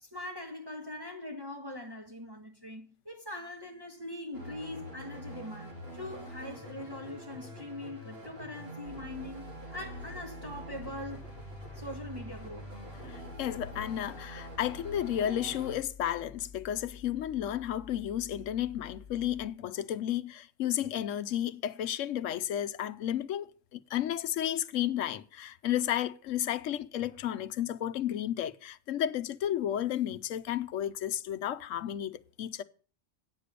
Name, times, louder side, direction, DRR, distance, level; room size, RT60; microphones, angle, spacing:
voice 1, 0.0-11.3 11.7-12.7, left 1 dB, 20° right, 1.7 m, -42 dB
sound 1, 4.3-15.8, right 1 dB, 55° right, 2.8 m, -45 dB
sound 2, 8.8-19.5, left 6 dB, 20° left, 3.1 m, -51 dB
voice 2, 13.0-32.6, left 11 dB, 85° left, 1.0 m, -32 dB
9.1 x 6.5 x 6.7 m
omnidirectional pair, 1.3 m